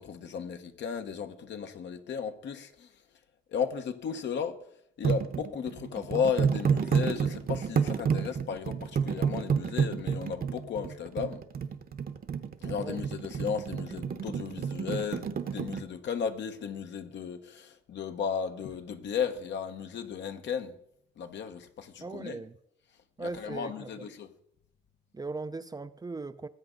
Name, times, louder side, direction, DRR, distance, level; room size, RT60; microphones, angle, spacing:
voice 1, 0.0-2.9 3.5-4.6 5.0-11.4 12.6-20.8 21.2-22.4 23.2-24.3, left 7 dB, 65° left, 1.2 m, -35 dB
sound 1, 5.0-15.8, right 7 dB, 45° right, 1.0 m, -30 dB
voice 2, 22.0-22.6 23.2-23.9 25.1-26.5, right 3 dB, 20° right, 0.5 m, -38 dB
19.5 x 7.9 x 3.9 m
cardioid pair, 90°, 20 cm